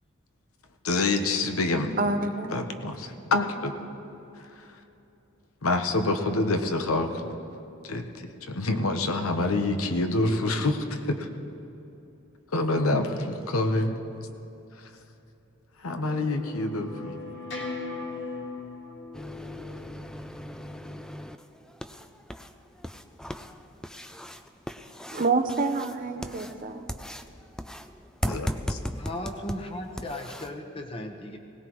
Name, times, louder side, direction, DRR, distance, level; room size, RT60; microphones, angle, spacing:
voice 1, 0.8-1.9 2.5-3.7 5.6-7.3 7.8-11.3 12.5-13.9 15.8-17.2 28.3-28.8, left 2 dB, 85° left, 6 dB, 1.0 m, -27 dB
voice 2, 2.0-2.7 25.1-26.9, right 3 dB, 40° right, 5 dB, 0.7 m, -27 dB
sound 1, 16.1-21.2, left 3 dB, 55° left, 2.0 m, -39 dB
sound 2, 19.1-30.5, equal, 5° left, 0.3 m, -38 dB
voice 3, 28.8-31.4, left 1 dB, 25° left, 2 dB, 1.1 m, -36 dB
21.0 x 18.0 x 3.1 m, 2.9 s
head